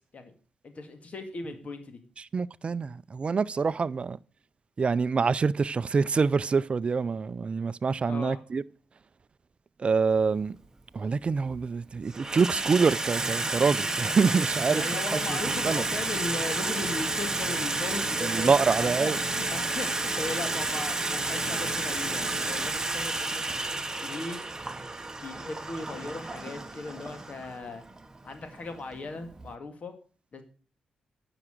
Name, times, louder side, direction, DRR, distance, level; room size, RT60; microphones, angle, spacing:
voice 1, 0.6-2.0 8.1-8.4 14.7-23.6 24.0-24.4 25.2-27.8 28.2-29.9 30.3-30.4, left 3 dB, 50° left, 2.0 m, -38 dB
voice 2, 2.2-4.2 4.8-8.6 9.8-10.6 10.9-14.8 15.3-15.4 15.6-15.8 18.2-19.2, right 5 dB, 40° right, 0.4 m, -26 dB
Water tap faucet / Sink (filling or washing), 10.2-10.3 11.2-11.6 11.9-29.5, right 2 dB, 20° right, 1.0 m, -31 dB
sound 1, 15.2-22.7, equal, 25° left, 3.8 m, -40 dB
9.8 x 6.0 x 6.5 m
cardioid pair, 65°, 3 cm